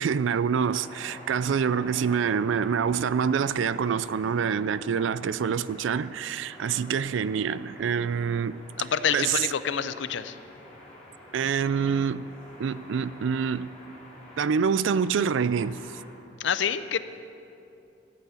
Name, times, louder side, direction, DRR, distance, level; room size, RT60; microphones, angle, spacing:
voice 1, 0.0-8.6 9.1-9.5 11.3-12.3 12.6-13.7 14.4-15.8, right 6 dB, 75° right, 0.4 m, -26 dB
sound 1, 0.5-16.1, left 1 dB, 5° left, 3.5 m, -48 dB
voice 2, 8.8-10.4 16.4-17.0, left 7 dB, 70° left, 0.5 m, -27 dB
14.0 x 8.2 x 8.4 m
head